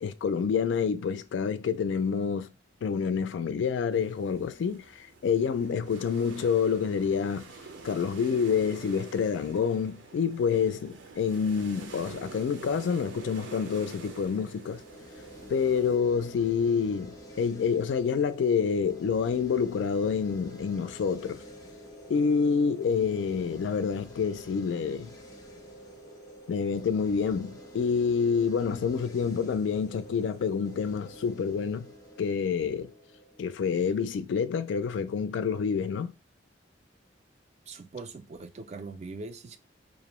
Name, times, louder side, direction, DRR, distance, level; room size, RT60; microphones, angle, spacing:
voice 1, 0.0-2.5 2.8-7.5 7.8-14.8 15.5-21.4 22.1-25.1 26.5-31.9 32.2-32.9 33.4-36.1, left 6 dB, 75° left, 0.3 m, -28 dB
sound 1, 3.9-16.0, right 4 dB, 80° right, 0.6 m, -47 dB
sound 2, 14.5-33.6, equal, 20° left, 0.5 m, -48 dB
voice 2, 37.7-39.6, right 3 dB, 35° right, 0.3 m, -41 dB
2.5 x 2.0 x 2.9 m
head